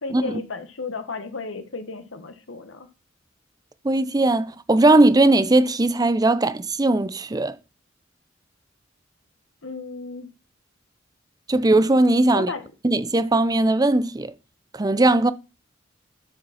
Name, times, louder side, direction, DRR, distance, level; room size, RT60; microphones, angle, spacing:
voice 1, 0.0-2.9 9.6-10.3 12.3-12.6, left 3 dB, 85° left, 1.3 m, -34 dB
voice 2, 3.8-7.6 11.5-12.5 12.8-14.3 14.7-15.3, right 2 dB, 20° right, 0.6 m, -19 dB
11.0 x 5.3 x 5.7 m
head